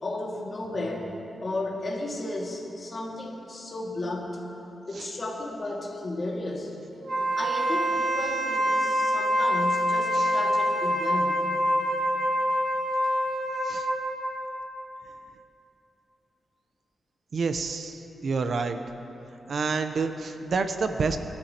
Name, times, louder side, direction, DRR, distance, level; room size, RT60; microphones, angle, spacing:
voice 1, 0.0-4.4 4.9-6.7 7.4-11.5, left 2 dB, 40° left, -2 dB, 2.0 m, -34 dB
Wind instrument woodwind instrument, 7.0-14.5, equal, 90° right, 2.5 m, -26 dB
voice 2, 17.3-18.8 19.5-21.2, right 4 dB, 60° right, 8 dB, 0.6 m, -28 dB
20.0 x 12.5 x 2.9 m, 2.9 s
wide cardioid pair, 110°, 0 cm